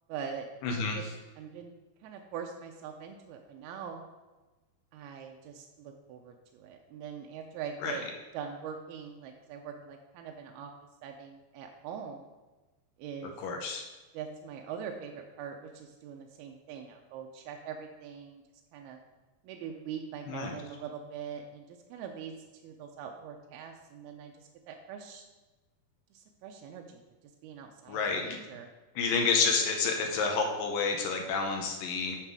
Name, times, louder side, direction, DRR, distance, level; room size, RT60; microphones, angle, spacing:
voice 1, 0.1-1.0 1.4-1.7 2.0-4.0 4.9-8.0 8.3-10.7 11.0-12.2 13.0-13.4 14.1-18.4 18.7-19.0 19.4-22.3 22.6-24.3 24.7-25.3 26.1-27.0 27.4-28.7, right 7 dB, 85° right, 2 dB, 2.5 m, -42 dB
voice 2, 0.6-1.0 7.8-7.9 13.4-13.8 20.3-20.5 27.9-28.4 29.0-32.2, left 4 dB, 75° left, 2 dB, 2.1 m, -29 dB
9.0 x 5.9 x 4.7 m, 1.2 s
omnidirectional pair, 4.6 m